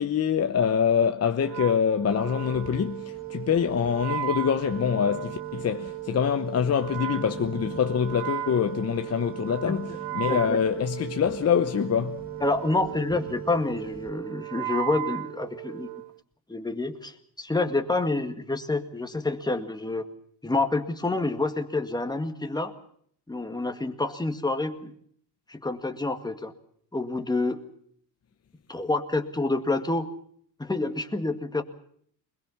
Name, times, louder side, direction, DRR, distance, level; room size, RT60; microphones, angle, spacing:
voice 1, 0.0-12.2, left 7 dB, 35° left, 0.9 m, -25 dB
Wind instrument woodwind instrument, 1.4-16.1, right 14 dB, 75° right, 0.8 m, -36 dB
sound 1, 2.1-14.1, right 2 dB, 20° right, 2.6 m, -46 dB
voice 2, 10.3-10.6 12.4-15.9 16.5-20.1 20.4-22.7 23.3-24.9 25.5-26.5 26.9-27.6 28.7-30.1 30.6-31.6, left 2 dB, 10° left, 1.9 m, -28 dB
22.0 x 21.0 x 7.2 m
cardioid pair, 105°, 42 cm